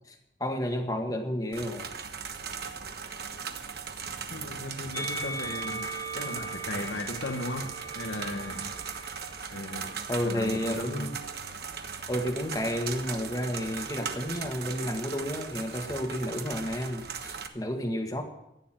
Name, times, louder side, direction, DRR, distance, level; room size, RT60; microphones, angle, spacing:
voice 1, 0.1-1.9 10.1-11.1 12.1-18.2, equal, 20° left, 4 dB, 1.7 m, -31 dB
sound 1, 1.5-17.5, right 6 dB, 60° right, 1.2 m, -38 dB
voice 2, 4.3-8.8 9.5-11.1, left 2 dB, 80° left, 3 dB, 1.3 m, -37 dB
Musical instrument, 4.9-11.3 12.2-13.2, right 2 dB, 25° right, 3.9 m, -41 dB
14.5 x 9.7 x 7.6 m, 0.87 s
head